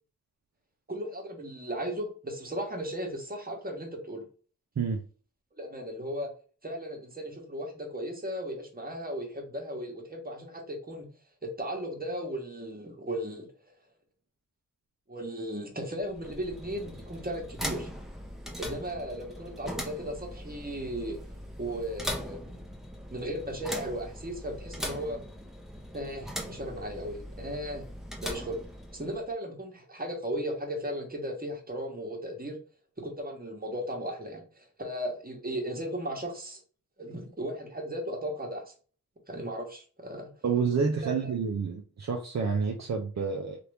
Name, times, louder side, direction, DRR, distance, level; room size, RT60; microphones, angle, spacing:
voice 1, 0.9-4.2 5.6-6.3 6.6-11.1 11.4-13.5 15.1-17.9 18.6-21.2 21.6-22.6 23.1-25.2 25.9-27.9 28.2-28.6 28.9-32.6 33.0-36.6 37.0-38.7 39.3-40.3 41.0-41.3, equal, 25° right, 1.1 m, -36 dB
sound 1, 16.0-29.3, equal, ahead, 0.7 m, -40 dB
voice 2, 40.4-43.6, right 5 dB, 50° right, 0.5 m, -29 dB
2.9 x 2.5 x 3.3 m
cardioid pair, 40°, 34 cm